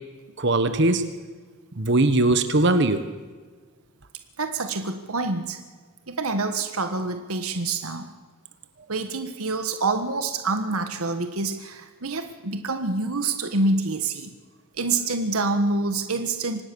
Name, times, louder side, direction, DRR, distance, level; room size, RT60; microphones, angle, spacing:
voice 1, 0.4-1.1 1.8-3.1, right 2 dB, 55° right, 10 dB, 1.3 m, -20 dB
voice 2, 4.4-5.6 6.1-8.1 8.9-14.3 14.8-16.6, right 3 dB, 80° right, 7 dB, 1.5 m, -26 dB
25.0 x 19.0 x 7.0 m, 1.5 s
head